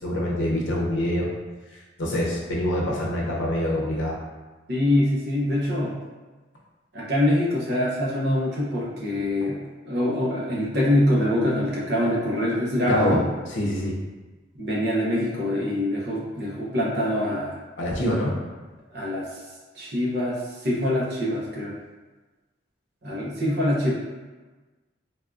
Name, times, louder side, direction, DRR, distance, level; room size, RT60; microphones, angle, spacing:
voice 1, 0.0-1.3 2.0-4.2 12.8-13.2 13.5-14.0 17.8-18.3, left 1 dB, 80° left, -3 dB, 0.7 m, -25 dB
voice 2, 4.7-5.9 6.9-9.6 9.8-13.2 14.5-17.6 18.9-19.3 19.8-21.7 23.0-23.9, left 1 dB, 60° right, -5 dB, 0.7 m, -24 dB
3.4 x 2.2 x 2.5 m, 1.3 s
head